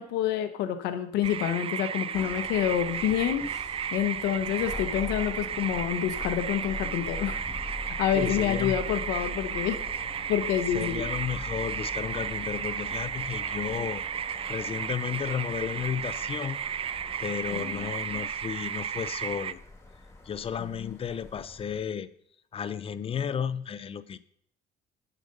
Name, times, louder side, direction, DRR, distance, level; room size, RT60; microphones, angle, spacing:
voice 1, 0.0-3.4 3.9-7.4 7.8-9.8 10.3-11.0 17.5-17.8 20.6-21.0, left 10 dB, 90° left, 9 dB, 1.0 m, -28 dB
sound 1, 1.2-19.5, right 8 dB, 35° right, 0.4 m, -34 dB
sound 2, 2.1-21.8, left 2 dB, 15° left, 1.7 m, -43 dB
voice 2, 8.1-8.8 10.7-16.6 17.2-19.6 20.3-22.1 22.5-24.2, left 8 dB, 35° left, 15 dB, 0.5 m, -33 dB
10.0 x 5.1 x 5.3 m, 0.68 s
cardioid pair, 110°, 17 cm